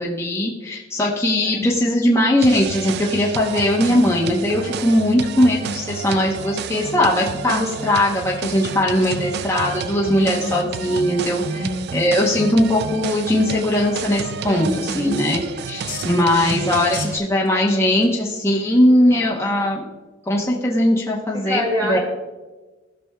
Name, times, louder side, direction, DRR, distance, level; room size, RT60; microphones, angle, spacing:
voice 1, 0.0-11.4 11.9-14.7 14.9-15.4 15.7-19.8 20.3-21.6 21.9-22.0, left 1 dB, 15° left, -4 dB, 0.9 m, -19 dB
sound 1, 1.4-1.8 2.6-2.7 3.1-3.6 4.1-4.2 4.6-6.1 6.6-8.5 9.0-9.2 10.2-10.6 10.9-11.0 11.6-11.7 12.3-12.4 13.0-13.1 13.5-14.3 14.6-15.5 15.8-16.1 16.7-18.4, left 7 dB, 45° left, 2.0 m, -41 dB
sound 2, 2.4-17.2, right 7 dB, 55° right, 0.3 m, -30 dB
voice 2, 10.2-10.5 11.5-11.9 14.4-15.0 16.4-16.7 19.1-19.5 21.3-22.0, left 1 dB, 25° right, -1 dB, 2.1 m, -28 dB
15.0 x 6.1 x 2.3 m, 1.2 s
head